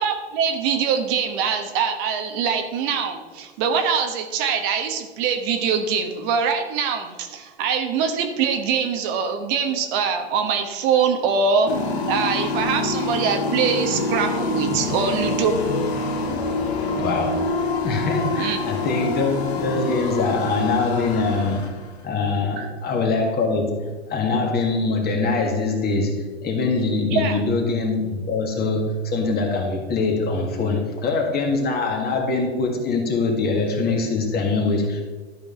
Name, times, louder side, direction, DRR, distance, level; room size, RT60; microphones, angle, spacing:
voice 1, 0.0-11.7 12.1-15.5 18.4-18.6 22.6-22.7 27.1-27.4, right 6 dB, 50° right, 5 dB, 1.2 m, -23 dB
sound 1, 11.7-22.0, left 2 dB, 75° left, 1.6 m, -26 dB
voice 2, 17.0-17.5 17.8-21.7 22.0-35.0, left 3 dB, 30° left, 2 dB, 1.7 m, -23 dB
12.0 x 5.2 x 3.8 m, 1.4 s
hypercardioid pair, 105°, 33 cm